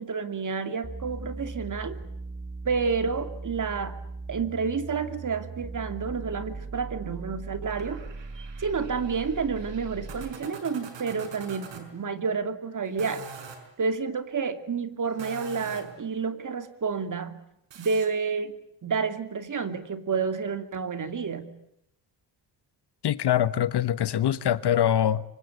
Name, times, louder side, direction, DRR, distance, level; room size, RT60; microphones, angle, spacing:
voice 1, 0.0-2.0 2.6-4.0 4.3-8.0 8.6-13.2 13.8-17.4 17.8-18.6 18.8-21.5, right 5 dB, 45° right, 2.6 m, -30 dB
sound 1, 0.8-10.4, right 3 dB, 15° right, 1.0 m, -39 dB
sound 2, 7.7-11.8 12.9-13.6 15.0-16.0 17.7-18.1, right 5 dB, 80° right, 5.5 m, -45 dB
voice 2, 23.0-25.2, left 10 dB, 65° left, 1.3 m, -23 dB
25.5 x 25.0 x 9.2 m
cardioid pair, 110°, 43 cm